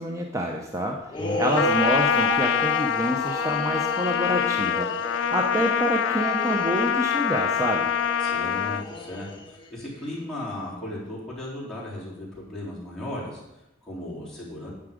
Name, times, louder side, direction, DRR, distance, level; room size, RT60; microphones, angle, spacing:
voice 1, 0.0-1.1 1.4-7.9, equal, 15° right, 2 dB, 0.7 m, -27 dB
sound 1, 1.1-9.7, equal, 25° left, 1.0 m, -33 dB
Trumpet, 1.5-8.9, left 9 dB, 65° left, 0.3 m, -25 dB
voice 2, 8.2-14.7, left 1 dB, ahead, -8 dB, 3.6 m, -36 dB
9.7 x 8.9 x 5.0 m, 0.89 s
head